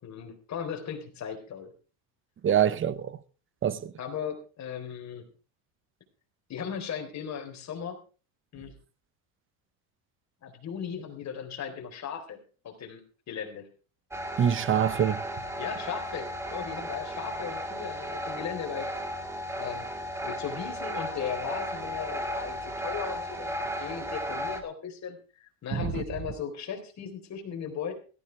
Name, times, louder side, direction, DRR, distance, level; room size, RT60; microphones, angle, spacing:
voice 1, 0.0-1.7 4.0-5.3 6.5-8.0 8.5-8.7 10.4-13.0 13.3-13.7 15.6-18.9 19.6-19.8 20.2-27.9, left 7 dB, 40° left, 4.1 m, -37 dB
voice 2, 2.4-3.2 3.6-3.9 14.4-15.2 25.7-26.0, right 9 dB, 30° right, 0.9 m, -25 dB
sound 1, 14.1-24.6, equal, 5° right, 2.0 m, -35 dB
17.0 x 14.0 x 3.4 m
cardioid pair, 140°, 44 cm